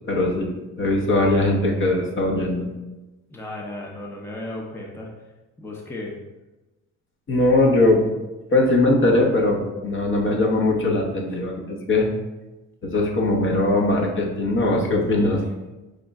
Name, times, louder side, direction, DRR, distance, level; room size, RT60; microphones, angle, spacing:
voice 1, 0.1-2.7 7.3-8.0 8.5-12.1 12.8-15.4, left 2 dB, 40° left, 1 dB, 0.8 m, -20 dB
voice 2, 3.3-5.1 5.6-6.2 11.3-11.4 15.1-15.5, left 1 dB, 10° left, -1 dB, 0.5 m, -35 dB
5.0 x 2.1 x 3.5 m, 1.1 s
cardioid pair, 90°, 30 cm